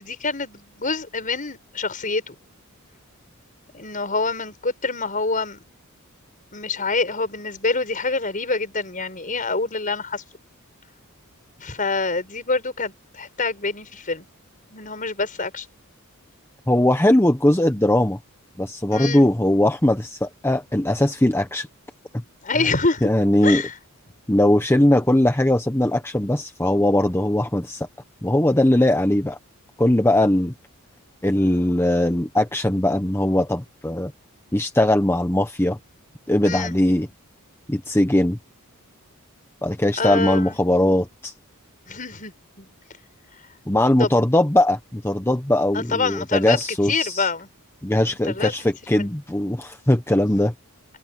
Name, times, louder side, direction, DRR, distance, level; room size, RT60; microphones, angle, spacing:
voice 1, 0.0-2.4 3.7-5.6 6.5-10.2 11.6-14.2 14.7-15.7 18.9-19.2 22.4-23.1 23.4-23.7 36.4-36.7 40.0-40.6 41.9-42.3 42.6-42.7 44.0-44.1 45.7-46.6 46.9-47.5 48.1-48.5 48.9-49.1, left 3 dB, 35° left, 5.6 m, -26 dB
voice 2, 16.7-18.2 18.6-21.7 23.0-23.6 24.3-27.9 28.2-29.4 29.8-30.5 31.2-34.1 34.5-35.8 36.3-37.1 37.7-38.4 39.6-41.3 43.7-47.3 47.8-50.5, left 1 dB, 10° left, 0.9 m, -20 dB
head